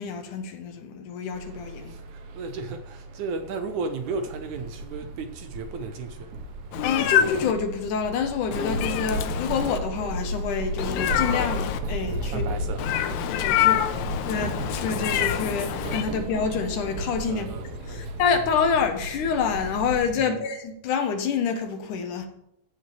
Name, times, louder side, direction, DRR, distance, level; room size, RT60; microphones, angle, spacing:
voice 1, 0.0-2.0 6.8-12.5 13.4-13.9 14.3-17.5 17.8-22.3, left 6 dB, 65° left, 2.5 m, -27 dB
sound 1, 1.3-20.1, right 1 dB, 90° right, 3.1 m, -34 dB
voice 2, 1.9-6.3 12.2-12.8 13.1-13.3 17.3-18.1 20.2-20.3, right 4 dB, 70° right, 1.9 m, -34 dB
Meow, 6.7-7.5 8.5-9.8 10.8-11.8 12.8-16.0, left 11 dB, 90° left, 2.5 m, -26 dB
14.0 x 5.1 x 7.2 m
omnidirectional pair, 4.1 m